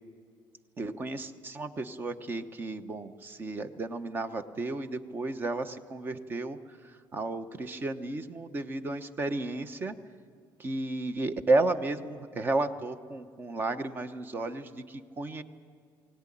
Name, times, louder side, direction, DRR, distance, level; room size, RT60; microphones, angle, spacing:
voice 1, 0.8-10.0 10.6-15.4, right 2 dB, 25° right, 10 dB, 1.0 m, -33 dB
22.5 x 18.0 x 10.0 m, 2.2 s
cardioid pair, 165°, 8 cm